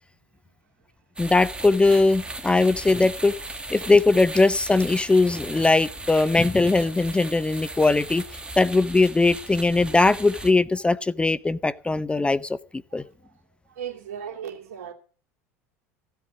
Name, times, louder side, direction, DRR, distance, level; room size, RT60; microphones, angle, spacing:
voice 1, 1.2-3.3 3.7-8.2 8.6-12.6 12.9-13.0, left 3 dB, 15° left, 0.6 m, -20 dB
sound 1, 1.2-10.5, right 2 dB, 10° right, 2.1 m, -37 dB
voice 2, 13.7-14.9, right 8 dB, 70° right, 2.7 m, -36 dB
15.0 x 8.0 x 8.2 m
hypercardioid pair, 80°, 8 cm